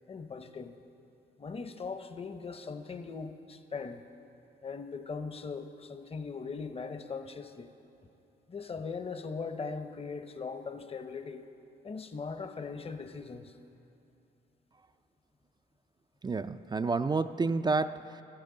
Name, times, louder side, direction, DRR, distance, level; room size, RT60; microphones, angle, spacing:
voice 1, 0.1-0.8 1.4-4.0 4.6-7.7 8.5-11.5 11.8-13.5, left 5 dB, 30° left, 9 dB, 0.8 m, -40 dB
voice 2, 16.2-18.2, right 3 dB, 25° right, 10 dB, 0.4 m, -30 dB
15.5 x 14.0 x 3.9 m, 2.9 s
supercardioid pair, 65°, 18 cm